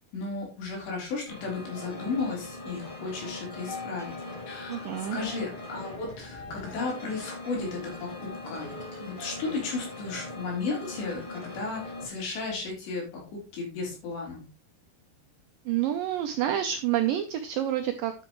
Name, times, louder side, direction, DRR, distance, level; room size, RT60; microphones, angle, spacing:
voice 1, 0.1-4.1 4.5-8.7 9.0-13.2 13.5-14.4, left 4 dB, 90° left, -1 dB, 5.8 m, -34 dB
sound 1, 1.3-12.1, left 2 dB, 35° left, 0.8 m, -41 dB
sound 2, 2.2-9.8, left 4 dB, 55° left, 7.4 m, -48 dB
voice 2, 4.7-5.2 15.7-18.1, right 11 dB, 85° right, 7 dB, 2.0 m, -28 dB
9.6 x 8.8 x 3.1 m, 0.30 s
omnidirectional pair, 4.9 m